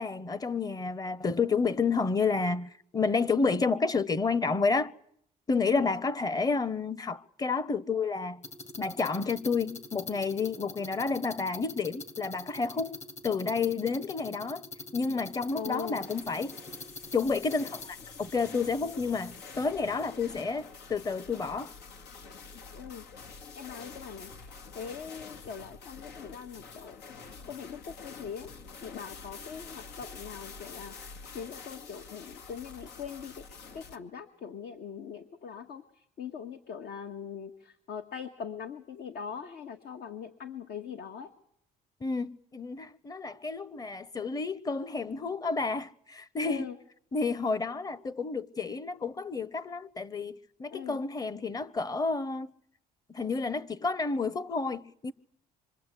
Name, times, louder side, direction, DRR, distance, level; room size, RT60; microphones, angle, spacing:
voice 1, 0.0-4.9 5.5-8.4 8.8-13.0 13.2-14.6 14.9-16.6 17.1-21.7 42.0-46.7 47.1-52.5 53.1-55.1, left 4 dB, 20° left, 1.0 m, -30 dB
sound 1, 8.4-17.9, left 3 dB, 40° left, 2.5 m, -44 dB
sound 2, 15.2-34.0, left 5 dB, 85° left, 2.1 m, -47 dB
voice 2, 15.5-16.0 22.7-23.0 23.6-28.5 28.8-33.4 33.7-41.3 46.4-46.8 50.7-51.0, left 7 dB, 65° left, 1.9 m, -42 dB
26.0 x 24.0 x 8.4 m
cardioid pair, 110°, 17 cm